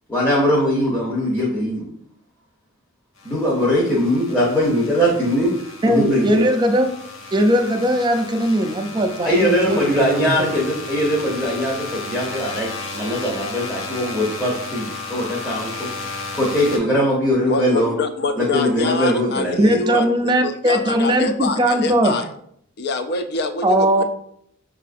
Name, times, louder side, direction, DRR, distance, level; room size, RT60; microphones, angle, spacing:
voice 1, 0.1-1.8 3.2-5.5 5.9-6.4 9.2-17.9 18.4-19.7, equal, 10° left, -6 dB, 0.7 m, -21 dB
sound 1, 3.2-16.8, left 3 dB, 70° left, 0.8 m, -34 dB
voice 2, 5.8-6.9 7.3-10.4 19.6-22.1 23.6-24.0, equal, 20° right, 6 dB, 0.4 m, -19 dB
voice 3, 17.5-22.3 22.8-24.0, left 3 dB, 50° left, 8 dB, 0.4 m, -25 dB
5.5 x 2.4 x 2.4 m, 0.69 s
head